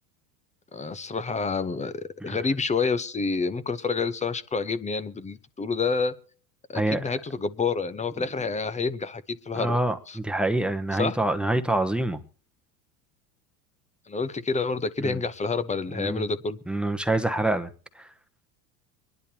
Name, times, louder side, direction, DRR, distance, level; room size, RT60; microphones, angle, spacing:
voice 1, 0.7-6.2 6.7-9.8 10.1-10.2 11.0-11.2 14.1-16.6, left 4 dB, 15° left, 0.8 m, -28 dB
voice 2, 9.5-12.2 15.0-15.2 15.9-16.2 16.7-17.7 17.9-18.1, right 1 dB, ahead, 1.0 m, -26 dB
24.5 x 10.5 x 2.9 m
supercardioid pair, 100°, 49 cm